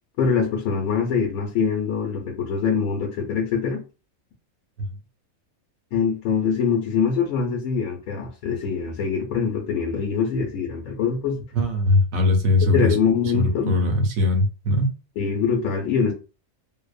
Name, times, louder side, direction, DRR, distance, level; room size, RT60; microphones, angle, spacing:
voice 1, 0.2-3.8 5.9-11.4 12.7-13.8 15.2-16.1, left 6 dB, 90° left, 1.1 m, -23 dB
voice 2, 11.5-12.9 13.2-14.9, left 2 dB, 75° right, 1.1 m, -20 dB
2.7 x 2.0 x 2.3 m
omnidirectional pair, 1.5 m